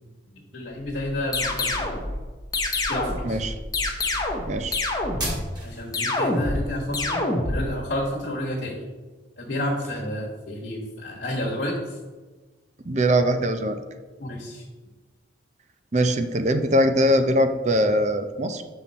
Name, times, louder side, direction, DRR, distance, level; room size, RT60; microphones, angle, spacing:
voice 1, 0.3-1.9 2.9-3.4 5.6-8.8 9.4-12.0 14.2-14.6, left 1 dB, 75° left, -4 dB, 1.3 m, -30 dB
sound 1, 1.2-5.9, equal, 20° right, 1.7 m, -34 dB
sound 2, 1.3-2.0 2.5-3.3 3.7-4.5 4.7-5.4 5.9-6.6 6.9-7.6, left 2 dB, 20° left, 0.8 m, -26 dB
voice 2, 3.2-3.5 4.5-4.8 12.9-13.8 15.9-18.6, equal, 40° right, 8 dB, 0.5 m, -21 dB
7.5 x 5.7 x 4.1 m, 1.3 s
head